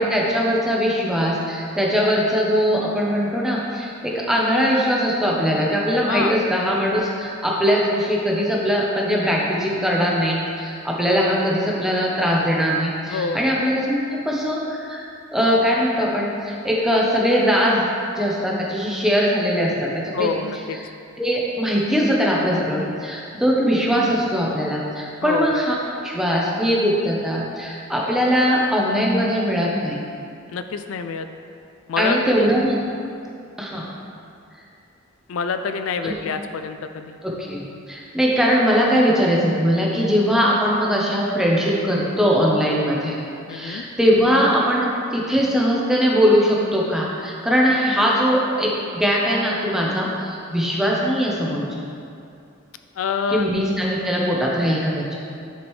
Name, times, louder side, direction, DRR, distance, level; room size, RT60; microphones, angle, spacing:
voice 1, 0.0-17.9 18.2-20.3 21.2-25.8 26.0-30.0 32.0-32.8 33.6-33.8 36.0-36.2 37.2-43.2 43.5-51.7 53.3-55.2, equal, ahead, -4 dB, 0.8 m, -21 dB
voice 2, 6.1-6.4 13.1-13.4 20.1-20.8 25.2-25.5 30.5-31.3 31.9-32.5 35.3-37.2 43.5-43.8 53.0-53.5, left 5 dB, 75° left, 8 dB, 0.4 m, -26 dB
10.0 x 5.0 x 3.2 m, 2.5 s
head